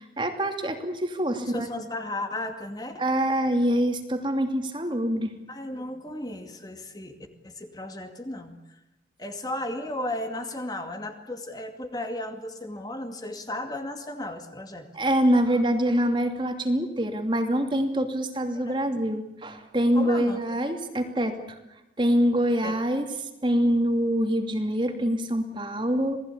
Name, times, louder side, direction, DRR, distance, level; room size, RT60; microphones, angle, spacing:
voice 1, 0.0-1.7 3.0-5.3 14.9-21.6 22.0-26.2, equal, 30° right, 6 dB, 2.6 m, -25 dB
voice 2, 1.4-3.0 5.5-7.2 7.4-8.8 9.2-14.9 18.6-19.0 19.9-20.4 22.6-22.8, left 1 dB, 20° left, 6 dB, 2.3 m, -35 dB
27.5 x 19.0 x 8.6 m, 0.95 s
head